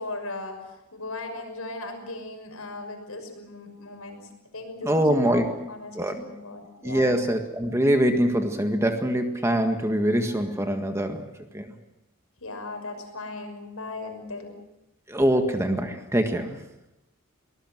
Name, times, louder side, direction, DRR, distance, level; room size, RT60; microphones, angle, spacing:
voice 1, 0.0-7.2 12.4-14.6, left 2 dB, 85° left, 4 dB, 6.1 m, -37 dB
voice 2, 4.8-5.5 5.9-6.3 6.8-11.2 11.5-11.7 15.1-16.6, right 1 dB, 15° right, 6 dB, 1.7 m, -23 dB
23.5 x 19.5 x 7.8 m, 0.91 s
head